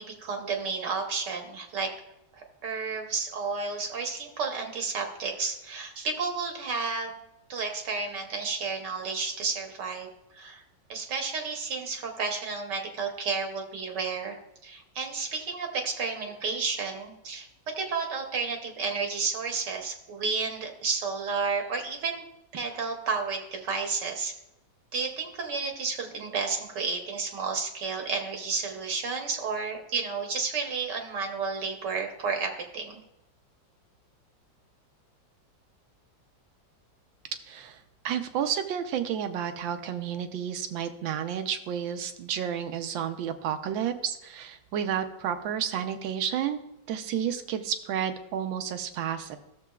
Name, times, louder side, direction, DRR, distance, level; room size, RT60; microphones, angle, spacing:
voice 1, 0.0-1.9 2.3-7.1 7.5-10.1 10.3-10.6 10.9-17.5 17.7-22.2 22.5-24.3 24.9-33.0, right 4 dB, 65° right, 3 dB, 1.5 m, -31 dB
voice 2, 37.5-46.6 46.9-49.4, right 9 dB, 85° right, 8 dB, 1.4 m, -31 dB
14.0 x 6.9 x 2.3 m, 0.88 s
omnidirectional pair, 2.1 m